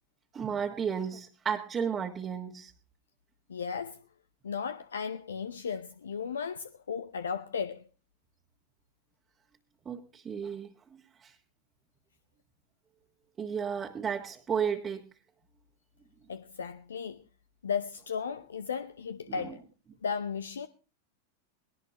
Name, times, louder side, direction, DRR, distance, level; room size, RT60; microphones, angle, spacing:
voice 1, 0.3-2.7 9.8-10.7 11.2-11.3 13.4-15.0 19.3-19.5, right 7 dB, 20° right, 1.5 m, -33 dB
voice 2, 3.5-4.0 4.4-7.8 16.3-17.2 17.6-19.6 20.0-20.7, left 6 dB, 70° left, 0.7 m, -35 dB
20.0 x 18.5 x 3.0 m
figure-of-eight pair, 90°, 0 cm